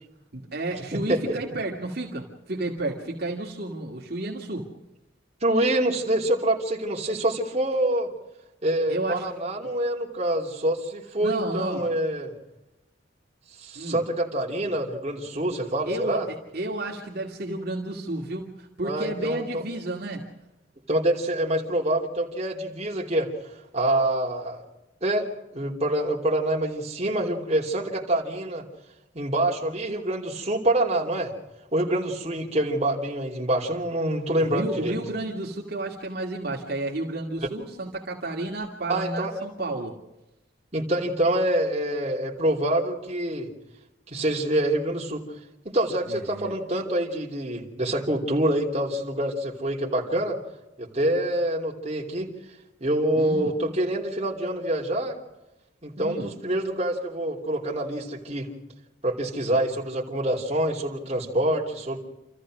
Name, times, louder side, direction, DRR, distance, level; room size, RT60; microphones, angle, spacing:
voice 1, 0.3-4.7 8.9-9.3 11.2-11.9 13.7-14.0 15.9-20.3 34.4-40.0 46.1-46.5 53.2-53.6 56.0-56.4, right 2 dB, 55° right, -1 dB, 2.4 m, -32 dB
voice 2, 0.9-1.4 5.4-8.1 8.6-12.3 13.6-16.2 18.8-19.6 20.9-23.3 23.7-24.6 25.0-28.7 29.1-31.3 31.7-35.0 38.9-39.3 40.7-43.5 44.1-45.2 45.6-50.4 50.8-52.3 52.8-55.2 55.8-58.5 59.0-62.0, right 1 dB, 35° right, -2 dB, 3.2 m, -26 dB
28.5 x 14.5 x 6.4 m, 0.96 s
head